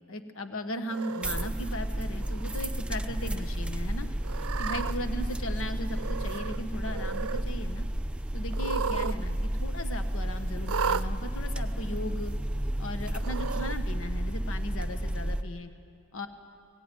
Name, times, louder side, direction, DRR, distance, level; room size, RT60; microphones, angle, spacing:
voice 1, 0.1-4.1 4.6-7.9 8.3-12.3 12.8-15.7 16.1-16.3, left 1 dB, 65° left, 8 dB, 1.3 m, -37 dB
Cat, 0.9-1.5 2.2-2.7 3.0-3.1 4.2-5.0 5.9-6.6 6.9-7.4 8.5-9.2 9.4-9.5 10.6-11.1 12.0-12.1 13.2-13.8, right 6 dB, 75° right, 0.6 m, -34 dB
sound 1, 1.2-15.4, right 1 dB, 5° right, 0.6 m, -32 dB
22.0 x 17.0 x 9.2 m, 2.3 s
head